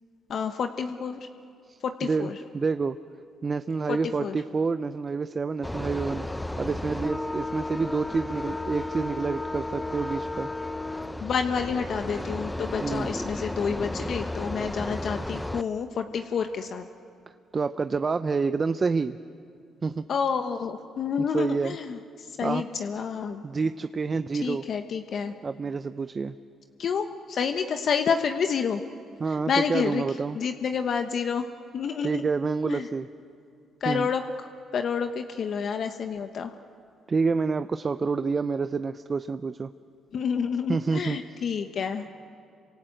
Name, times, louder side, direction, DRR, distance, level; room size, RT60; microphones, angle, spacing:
voice 1, 0.3-1.2 1.8-2.4 3.9-4.4 11.2-16.9 20.1-23.4 24.4-25.3 26.8-28.8 29.5-30.0 30.3-31.5 31.7-32.2 32.7-32.9 33.8-34.2 34.7-36.5 40.1-42.1, left 6 dB, 60° left, 6 dB, 1.1 m, -29 dB
voice 2, 1.7-3.0 3.4-6.2 6.6-10.5 12.8-13.1 17.5-19.2 19.8-20.0 21.2-21.8 22.4-22.6 23.4-24.6 25.4-26.4 29.2-30.4 32.0-33.1 33.9-34.1 37.1-39.7 40.7-41.2, right 4 dB, 40° right, 11 dB, 0.7 m, -28 dB
sound 1, 5.6-15.6, left 1 dB, 10° left, 0.8 m, -33 dB
28.0 x 26.0 x 7.9 m, 2.4 s
supercardioid pair, 60°, 0 cm